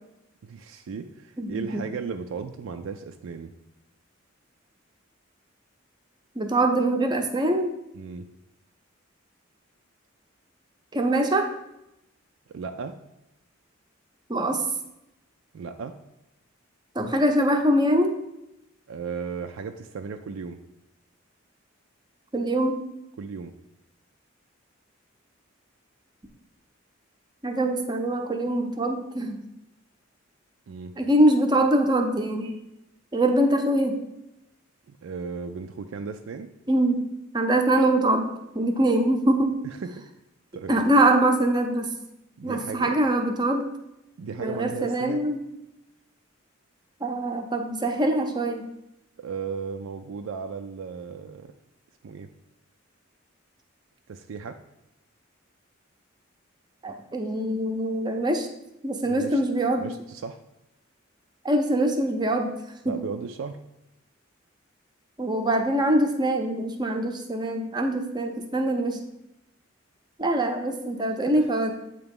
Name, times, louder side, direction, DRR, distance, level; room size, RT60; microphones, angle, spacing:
voice 1, 0.4-3.5 7.9-8.3 12.5-13.0 15.5-16.0 18.9-20.6 23.2-23.5 30.7-30.9 34.9-36.5 39.6-40.0 40.5-40.9 42.4-43.0 44.2-45.2 49.2-51.5 52.0-52.3 54.1-54.6 59.0-59.4 59.8-60.4 62.9-63.6 71.4-71.5, right 5 dB, 80° right, 6 dB, 0.4 m, -35 dB
voice 2, 1.4-1.8 6.4-7.7 10.9-11.5 14.3-14.6 16.9-18.2 22.3-22.9 27.4-29.4 31.0-32.6 33.1-34.0 36.7-37.1 37.3-38.3 38.5-39.6 40.7-41.9 42.4-43.7 44.4-45.4 47.0-48.6 56.8-58.5 58.8-59.9 61.4-62.5 62.8-63.0 65.2-69.0 70.2-71.7, right 1 dB, 20° right, 5 dB, 0.6 m, -23 dB
8.0 x 2.9 x 5.3 m, 0.88 s
head